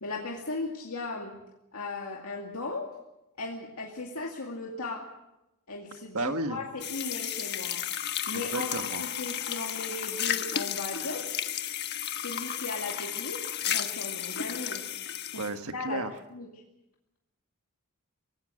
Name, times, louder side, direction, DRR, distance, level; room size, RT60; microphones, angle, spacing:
voice 1, 0.0-1.3 1.7-2.9 3.4-5.1 5.7-11.3 12.1-13.4 13.7-14.8 15.3-15.4 15.7-16.0 16.3-16.5, left 3 dB, 75° left, -1 dB, 2.4 m, -37 dB
voice 2, 6.1-6.6 8.3-9.0 15.3-16.1, right 2 dB, 75° right, 7 dB, 1.6 m, -33 dB
sound 1, 6.8-15.5, left 10 dB, 50° left, 1.3 m, -33 dB
25.0 x 18.0 x 6.5 m, 0.93 s
head